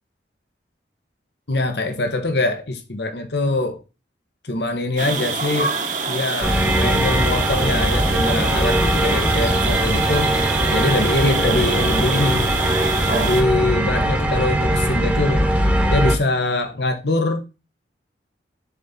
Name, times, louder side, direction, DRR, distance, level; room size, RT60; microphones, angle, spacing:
voice 1, 1.5-3.8 4.4-5.7 6.1-10.3 10.7-12.5 13.1-15.5 15.9-17.4, left 2 dB, 70° left, 1.2 m, -23 dB
sound 1, 5.0-13.4, right 4 dB, 45° right, 1.4 m, -25 dB
sound 2, 6.4-16.2, right 1 dB, 10° right, 1.2 m, -20 dB
7.3 x 4.2 x 3.8 m
head